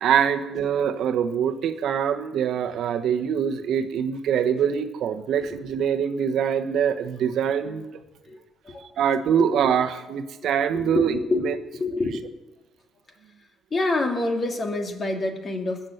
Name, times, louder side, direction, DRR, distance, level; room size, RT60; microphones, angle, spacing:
voice 1, 0.0-7.9 9.0-11.5, right 8 dB, 65° right, 7 dB, 1.3 m, -24 dB
voice 2, 10.7-11.4 11.7-12.2 13.7-15.9, left 2 dB, 35° left, 3 dB, 2.6 m, -27 dB
20.5 x 7.4 x 7.9 m, 1.1 s
cardioid pair, 105°, 0 cm